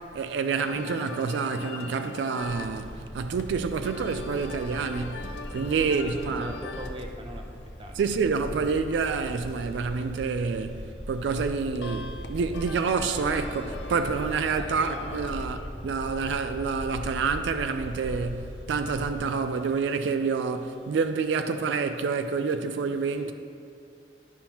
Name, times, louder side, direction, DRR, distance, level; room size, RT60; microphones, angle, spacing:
voice 1, 0.0-6.5 8.0-23.3, right 5 dB, 80° right, 0.3 m, -28 dB
sound 1, 0.5-19.8, left 3 dB, 75° left, 0.5 m, -43 dB
sound 2, 2.4-19.2, equal, 45° left, 1.3 m, -40 dB
voice 2, 5.8-8.0 8.5-8.7 14.5-15.2 23.2-23.3, right 1 dB, 30° right, 0.5 m, -42 dB
10.5 x 5.5 x 2.9 m
head